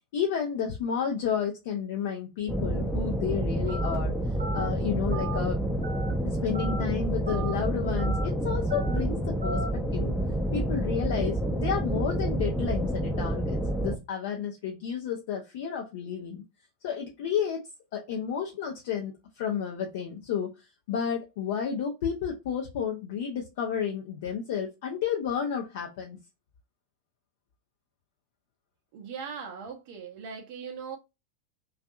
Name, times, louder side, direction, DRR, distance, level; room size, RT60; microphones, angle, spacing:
voice 1, 0.1-4.1 4.5-5.6 6.2-10.1 10.5-16.4 16.8-17.6 17.9-20.5 20.9-26.2, left 7 dB, 50° left, 0.5 m, -31 dB
sound 1, 2.5-14.0, right 1 dB, ahead, 0.5 m, -28 dB
Telephone, 3.7-4.0 4.4-4.7 5.1-5.4 5.8-6.1 6.5-6.8 7.3-7.5 8.0-8.3 8.7-9.0 9.4-9.7, right 1 dB, 80° right, 0.8 m, -37 dB
voice 2, 28.9-31.0, right 6 dB, 45° right, 0.6 m, -39 dB
2.6 x 2.3 x 2.3 m
figure-of-eight pair, 90°, 0 cm